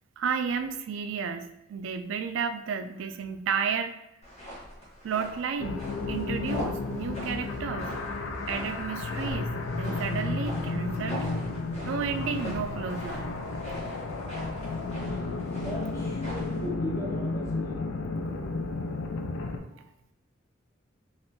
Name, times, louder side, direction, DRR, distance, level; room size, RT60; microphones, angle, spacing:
voice 1, 0.2-3.9 5.0-8.0 8.5-11.3 11.9-13.3, right 6 dB, 75° right, 8 dB, 0.3 m, -32 dB
sound 1, 4.2-16.6, left 1 dB, 35° left, 1.1 m, -42 dB
sound 2, 5.6-19.6, left 3 dB, 85° left, 0.4 m, -33 dB
voice 2, 14.7-15.1 15.6-17.8, left 2 dB, 15° left, -3 dB, 0.7 m, -38 dB
3.5 x 2.5 x 2.7 m, 0.87 s
head